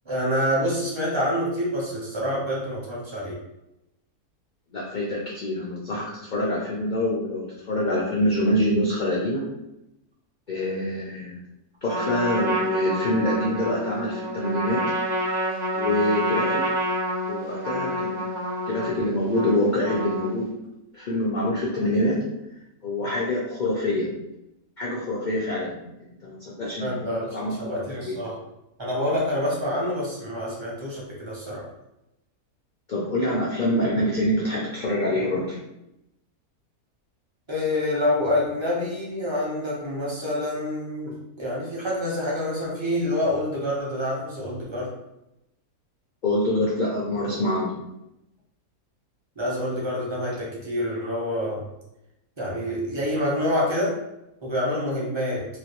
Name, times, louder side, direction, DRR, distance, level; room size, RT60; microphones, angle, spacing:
voice 1, 0.1-3.4 26.8-28.3 28.8-31.6 37.5-44.9 49.4-51.6 52.4-54.0 54.4-55.5, left 1 dB, 30° right, -5 dB, 0.6 m, -27 dB
voice 2, 4.7-9.4 10.5-11.4 11.8-14.8 15.7-16.6 17.3-18.3 18.7-20.5 20.9-22.2 22.8-24.1 24.8-27.6 28.0-28.2 32.9-35.6 46.2-47.7, left 1 dB, 85° left, -5 dB, 0.4 m, -25 dB
Trumpet, 11.9-20.5, equal, 80° right, 0.3 m, -28 dB
3.0 x 2.6 x 2.9 m, 0.89 s
omnidirectional pair, 1.6 m